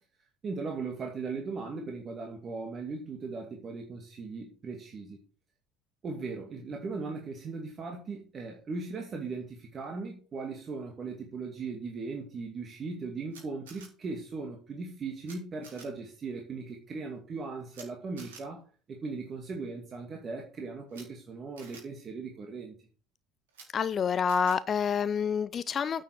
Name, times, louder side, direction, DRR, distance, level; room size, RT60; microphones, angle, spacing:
voice 1, 0.4-5.2 6.0-18.6 18.9-22.7, right 4 dB, 35° right, 2.4 m, -38 dB
Camera, 13.3-13.9 15.2-15.3 15.6-15.8 17.7-17.9 18.2-18.4 20.9-21.0 21.6-21.8 23.5-23.7 24.3-24.6, right 5 dB, 75° right, 4.1 m, -49 dB
voice 2, 23.7-26.0, left 7 dB, 35° left, 0.5 m, -28 dB
9.2 x 6.9 x 6.3 m
figure-of-eight pair, 65°, 0 cm